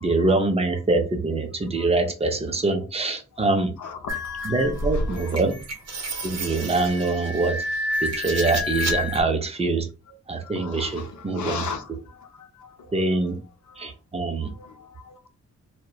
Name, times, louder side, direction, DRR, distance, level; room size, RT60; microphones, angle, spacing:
voice 1, 0.0-3.7 4.4-5.6 6.2-7.6 8.0-9.9 10.3-11.7 12.9-13.4 13.8-14.5, right 3 dB, 20° right, 0.4 m, -24 dB
voice 2, 4.0-4.4 5.0-5.2 6.1-6.2 10.6-11.1 11.3-11.8 12.6-12.9 13.8-13.9 14.6-15.1, left 5 dB, 75° left, 0.6 m, -35 dB
sound 1, 4.1-9.2, left 1 dB, 60° right, 0.6 m, -29 dB
2.7 x 2.1 x 2.3 m
wide cardioid pair, 150°, 30 cm